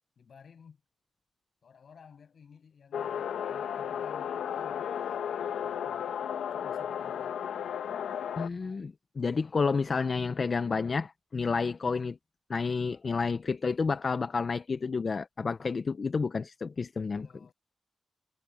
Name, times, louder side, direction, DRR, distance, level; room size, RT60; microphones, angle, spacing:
voice 1, 0.2-0.8 1.6-6.1 6.5-7.4 17.1-17.5, left 6 dB, 65° left, 7.3 m, -55 dB
sound 1, 2.9-8.5, left 8 dB, 90° left, 1.1 m, -34 dB
voice 2, 8.4-12.2 12.5-17.3, left 4 dB, 45° left, 0.6 m, -30 dB
cardioid pair, 75°, 0 cm